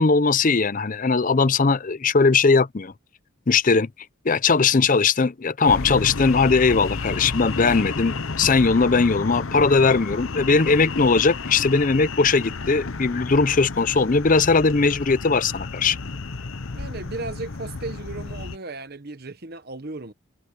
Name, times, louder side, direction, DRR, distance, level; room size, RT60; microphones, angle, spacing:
voice 1, 0.0-2.9 3.5-3.9 4.2-16.0, left 4 dB, 40° left, 0.6 m, -19 dB
sound 1, 5.7-18.6, left 3 dB, 65° left, 0.9 m, -32 dB
voice 2, 16.7-20.1, right 3 dB, 45° right, 1.2 m, -35 dB
head